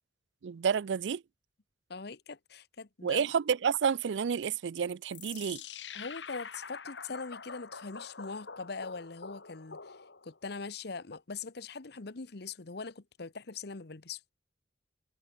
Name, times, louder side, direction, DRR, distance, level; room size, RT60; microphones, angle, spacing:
voice 1, 0.4-1.2 3.0-5.6, right 7 dB, 90° right, 0.4 m, -30 dB
voice 2, 1.9-3.3 5.9-10.0 10.2-14.2, left 4 dB, 65° left, 1.0 m, -42 dB
sound 1, 5.1-10.4, left 6 dB, 90° left, 2.2 m, -46 dB
head